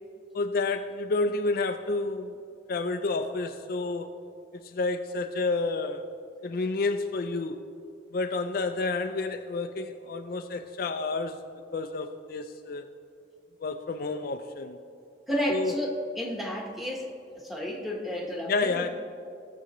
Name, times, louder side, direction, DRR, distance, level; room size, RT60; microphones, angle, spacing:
voice 1, 0.3-2.3 2.7-4.2 4.6-6.1 6.4-7.6 8.1-11.4 11.7-12.9 13.6-14.8 15.5-15.8 18.5-18.9, left 3 dB, 50° left, 7 dB, 0.4 m, -30 dB
voice 2, 15.3-18.9, equal, ahead, -1 dB, 1.1 m, -32 dB
17.0 x 7.0 x 3.0 m, 2.5 s
head